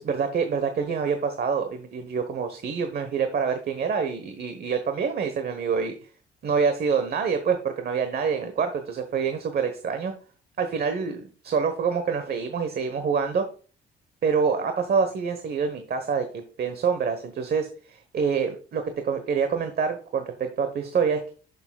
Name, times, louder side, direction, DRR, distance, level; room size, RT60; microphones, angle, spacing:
voice 1, 0.0-6.1 6.4-10.1 10.6-13.5 14.2-21.3, right 6 dB, 50° right, 7 dB, 1.1 m, -26 dB
11.0 x 6.8 x 2.3 m, 0.39 s
cardioid pair, 90°, 20 cm